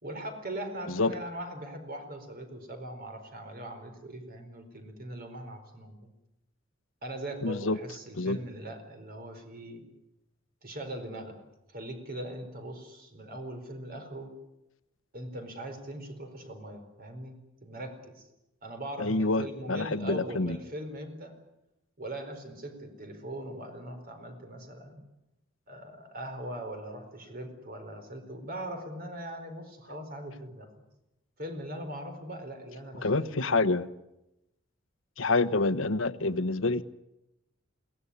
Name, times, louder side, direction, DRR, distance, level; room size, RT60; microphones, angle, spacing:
voice 1, 0.0-6.1 7.0-9.8 10.6-11.4 11.7-14.3 15.1-18.3 18.6-21.3 22.0-25.0 25.7-30.8 31.4-33.4, right 1 dB, 45° right, 6 dB, 4.6 m, -40 dB
voice 2, 7.4-7.8 8.1-8.4 19.0-20.6 33.0-33.9 35.2-36.8, left 3 dB, 70° left, 14 dB, 1.1 m, -27 dB
22.0 x 18.0 x 9.9 m, 0.91 s
head